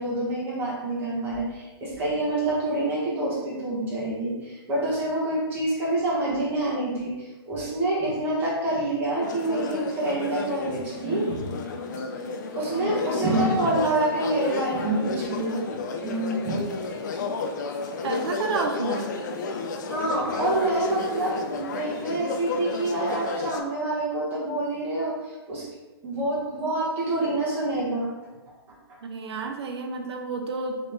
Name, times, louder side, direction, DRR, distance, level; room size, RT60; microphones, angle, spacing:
voice 1, 0.0-11.6 11.9-12.0 12.5-15.7 16.0-16.6 19.9-25.6 26.0-28.1, right 2 dB, 15° right, -7 dB, 0.9 m, -27 dB
sound 1, 9.2-23.6, left 4 dB, 45° left, 0.3 m, -32 dB
voice 2, 18.0-19.1 29.0-30.9, right 4 dB, 75° right, 4 dB, 0.4 m, -30 dB
3.1 x 2.9 x 3.2 m, 1.2 s
hypercardioid pair, 160°, 14 cm